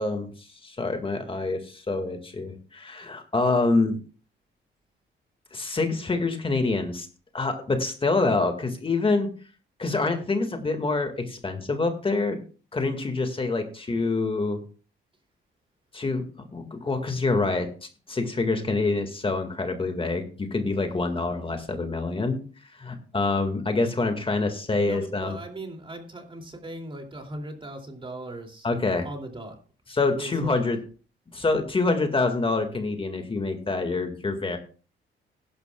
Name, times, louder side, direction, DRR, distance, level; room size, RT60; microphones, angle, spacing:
voice 1, 0.0-4.0 5.5-7.1 7.3-9.3 9.8-12.4 12.7-14.6 15.9-16.2 16.5-22.4 22.7-25.4 28.6-29.1 29.9-30.8 31.3-34.6, left 3 dB, 25° left, 6 dB, 1.8 m, -26 dB
voice 2, 24.8-28.7 29.0-29.6 30.2-30.6, right 1 dB, 25° right, 3 dB, 2.6 m, -38 dB
16.5 x 11.5 x 2.3 m, 0.38 s
cardioid pair, 90°, 20 cm